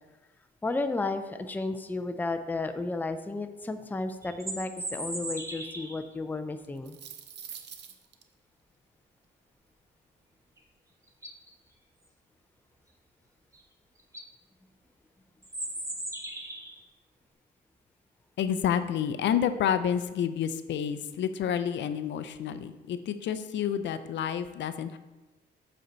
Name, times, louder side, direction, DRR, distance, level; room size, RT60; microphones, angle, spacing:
voice 1, 0.6-7.0 22.6-22.7, left 2 dB, 10° left, 8 dB, 0.4 m, -33 dB
sound 1, 4.2-6.1 10.6-10.7 11.1-11.5 13.5-13.6 14.0-14.3 15.4-16.8, right 1 dB, 15° right, 1.2 m, -37 dB
sound 2, 6.6-8.2, right 8 dB, 60° right, 0.7 m, -44 dB
voice 2, 18.4-25.0, left 9 dB, 65° left, 11 dB, 0.5 m, -29 dB
7.7 x 4.4 x 3.9 m, 1.2 s
cardioid pair, 90°, 20 cm